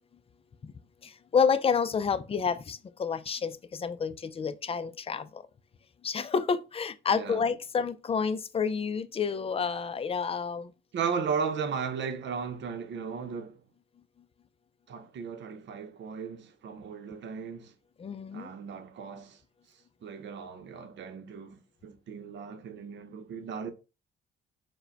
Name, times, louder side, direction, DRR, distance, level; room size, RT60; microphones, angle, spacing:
voice 1, 1.3-3.5 3.8-5.2 6.0-10.6 18.0-18.5, left 6 dB, 30° left, 0.4 m, -29 dB
voice 2, 7.1-7.5 10.9-13.6 14.9-17.7 18.3-19.4 20.0-23.7, right 6 dB, 65° right, 0.8 m, -36 dB
4.6 x 2.2 x 4.5 m
cardioid pair, 90°, 20 cm